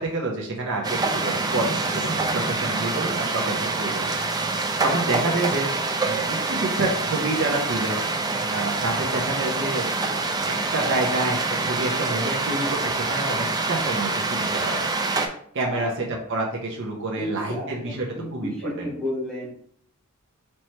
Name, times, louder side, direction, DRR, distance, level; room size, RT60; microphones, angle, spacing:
voice 1, 0.0-5.7 6.0-8.0 8.4-15.3 15.5-18.9, right 2 dB, 60° right, -1 dB, 0.7 m, -28 dB
sound 1, 0.8-15.3, right 3 dB, 20° right, 0.4 m, -26 dB
voice 2, 17.2-19.5, left 1 dB, 5° left, -5 dB, 1.4 m, -32 dB
4.4 x 3.0 x 3.2 m, 0.62 s
head